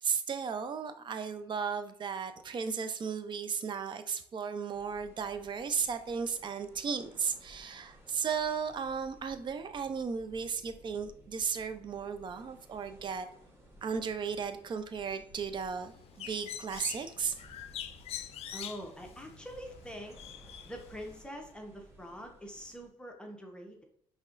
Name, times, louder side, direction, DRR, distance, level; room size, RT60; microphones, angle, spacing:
voice 1, 0.0-13.3 13.8-17.4, right 6 dB, 40° right, 10 dB, 0.6 m, -35 dB
sound 1, 4.7-22.9, equal, 20° right, 1.3 m, -57 dB
Bird, 15.8-21.2, left 10 dB, 60° left, 0.5 m, -45 dB
voice 2, 18.5-20.2 20.6-23.8, equal, 10° left, 1 dB, 1.0 m, -45 dB
5.4 x 3.6 x 2.5 m, 0.67 s
supercardioid pair, 70°, 12 cm